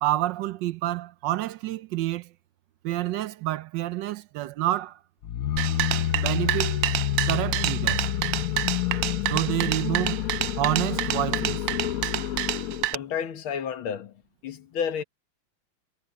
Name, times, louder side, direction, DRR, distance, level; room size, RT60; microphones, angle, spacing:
voice 1, 0.0-2.3 2.8-5.0 6.1-6.8 7.3-8.1 9.3-10.3 10.6-11.7, right 15 dB, 75° right, 1.1 m, -28 dB
sound 1, 5.2-12.9, left 11 dB, 70° left, 0.8 m, -28 dB
sound 2, 5.6-12.9, right 15 dB, 90° right, 0.8 m, -28 dB
voice 2, 12.9-14.1 14.4-15.0, left 7 dB, 85° left, 2.2 m, -31 dB
omnidirectional pair, 2.2 m